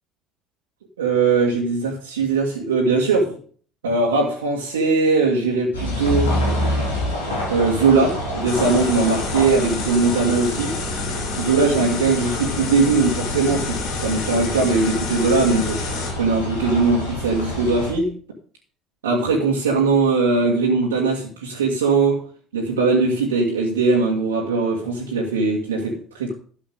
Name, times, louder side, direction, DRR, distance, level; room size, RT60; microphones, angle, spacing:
voice 1, 1.0-3.4 3.8-6.3 7.5-10.8 11.4-15.8 16.2-18.1 19.0-22.2 22.5-26.3, right 4 dB, 80° right, -2 dB, 2.0 m, -20 dB
sound 1, 5.7-17.9, equal, 80° left, 4.7 m, -28 dB
sound 2, 8.5-16.1, left 5 dB, 60° left, 2.9 m, -29 dB
12.5 x 7.4 x 5.1 m, 0.43 s
figure-of-eight pair, 55°, 0 cm